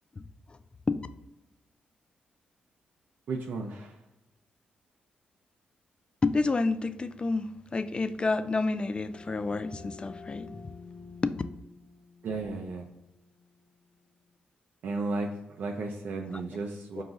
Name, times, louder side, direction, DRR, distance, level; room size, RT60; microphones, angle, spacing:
voice 1, 0.2-0.6 0.9-1.0 6.2-10.6 11.2-11.4 17.0-17.1, left 3 dB, 30° left, 0.3 m, -29 dB
voice 2, 3.3-4.0 12.2-12.8 14.8-17.0, right 3 dB, 70° right, 0.5 m, -34 dB
sound 1, 8.6-14.1, left 4 dB, 85° left, 0.9 m, -50 dB
4.7 x 2.3 x 3.8 m
cardioid pair, 70°, 3 cm